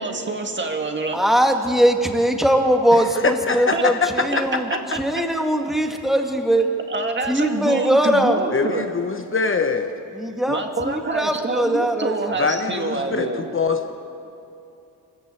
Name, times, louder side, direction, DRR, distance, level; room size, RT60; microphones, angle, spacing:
voice 1, 0.0-1.2 3.7-3.8 4.7-4.8 6.9-8.8 10.5-13.5, right 3 dB, 30° right, 4 dB, 2.0 m, -26 dB
voice 2, 1.1-4.7 4.9-6.7 7.3-8.4 10.1-12.4, equal, ahead, 4 dB, 1.8 m, -20 dB
voice 3, 3.2-4.1 8.5-9.9 12.4-13.9, left 4 dB, 35° left, 6 dB, 1.1 m, -23 dB
23.5 x 14.0 x 8.3 m, 2.7 s
cardioid pair, 110°, 38 cm